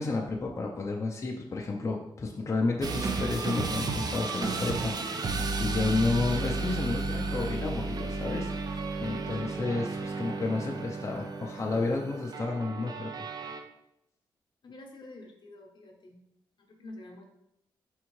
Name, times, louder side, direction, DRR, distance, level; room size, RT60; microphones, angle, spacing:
voice 1, 0.0-13.3, left 3 dB, 35° left, 0 dB, 0.5 m, -31 dB
sound 1, 2.8-13.6, right 3 dB, 50° right, 0.5 m, -33 dB
voice 2, 14.6-16.2 16.6-17.2, left 2 dB, 60° left, 2 dB, 0.8 m, -48 dB
4.2 x 3.6 x 3.1 m, 0.82 s
cardioid pair, 65°, 9 cm